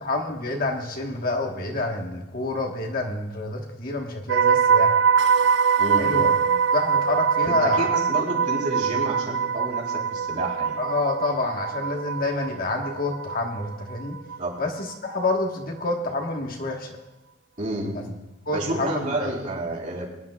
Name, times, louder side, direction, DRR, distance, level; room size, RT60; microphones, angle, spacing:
voice 1, 0.0-5.0 6.0-6.3 6.7-7.9 10.8-14.2 14.6-17.0 17.9-18.0 18.5-19.3, left 2 dB, 50° left, 1 dB, 1.4 m, -28 dB
sound 1, 4.3-14.4 14.6-14.9, right 6 dB, 65° right, 0.4 m, -23 dB
voice 2, 5.8-6.5 7.5-10.8 14.4-14.5 17.6-18.2 18.5-20.1, right 1 dB, 45° right, -3 dB, 3.5 m, -30 dB
22.5 x 10.5 x 2.4 m, 0.96 s
head